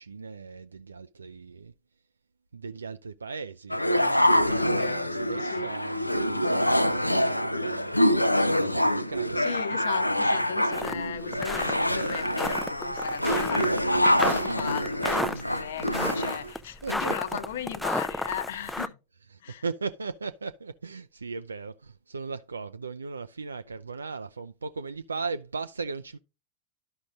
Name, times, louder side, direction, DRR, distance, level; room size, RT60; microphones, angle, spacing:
voice 1, 0.0-1.7 2.5-9.4 13.6-13.8 16.8-17.1 19.3-26.2, right 4 dB, 75° right, 0.3 m, -38 dB
sound 1, 3.7-16.5, equal, 85° left, 0.4 m, -25 dB
voice 2, 4.5-5.1 5.4-5.7 9.4-19.0 19.4-19.6, left 8 dB, 60° left, 0.7 m, -36 dB
sound 2, 10.7-11.0 11.3-18.9, left 1 dB, 5° left, 0.4 m, -32 dB
13.0 x 5.1 x 2.5 m
figure-of-eight pair, 90°, 0 cm